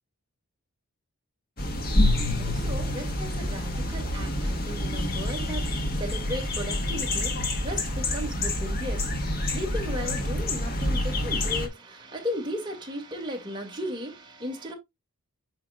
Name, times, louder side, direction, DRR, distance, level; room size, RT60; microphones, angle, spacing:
sound 1, 1.6-11.7, left 1 dB, 45° left, 1.6 m, -27 dB
voice 1, 1.8-7.4 7.6-9.1 9.4-14.7, equal, 20° right, 2.5 m, -36 dB
8.7 x 5.3 x 2.5 m
head